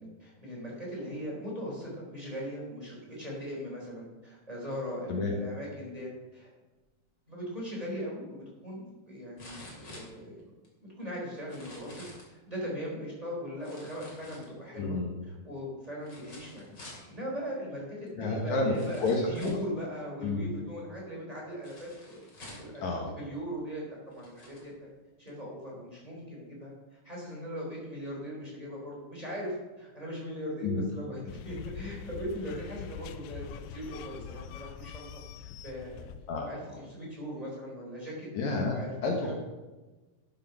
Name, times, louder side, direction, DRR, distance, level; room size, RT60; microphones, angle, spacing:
voice 1, 0.0-6.5 7.3-10.4 10.8-15.0 15.2-24.9 25.2-33.4 33.7-36.1 36.4-38.3 38.7-39.4, equal, 10° right, -4 dB, 3.4 m, -39 dB
sound 1, 8.0-8.1 9.4-10.7 11.4-12.3 13.6-14.8 16.0-17.1 18.1-18.2 18.7-19.7 21.6-22.8 23.6-23.7 24.1-24.7 25.3-25.4, left 2 dB, 35° left, 3.0 m, -49 dB
voice 2, 14.7-15.1 18.2-19.6 20.2-20.5 22.8-23.1 30.6-30.8 36.3-36.5 38.3-39.4, left 3 dB, 65° left, 1 dB, 2.5 m, -30 dB
sound 2, 31.3-36.6, left 8 dB, 85° left, 2.2 m, -44 dB
12.5 x 6.7 x 5.8 m, 1.1 s
omnidirectional pair, 3.8 m